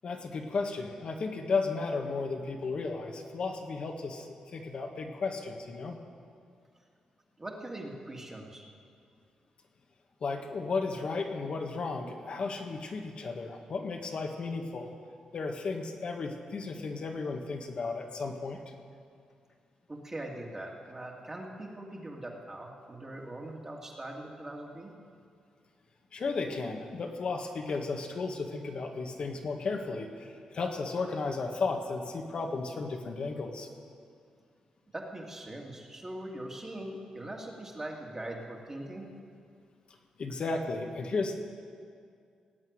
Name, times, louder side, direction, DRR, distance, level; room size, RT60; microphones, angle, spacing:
voice 1, 0.0-6.0 10.2-14.9 15.3-18.6 26.1-33.7 40.2-41.4, left 4 dB, 55° left, 3 dB, 1.7 m, -34 dB
voice 2, 7.4-8.7 19.9-24.9 34.9-39.1, right 1 dB, 25° right, -1 dB, 2.3 m, -41 dB
18.0 x 8.3 x 9.6 m, 2.2 s
cardioid pair, 95°, 2 cm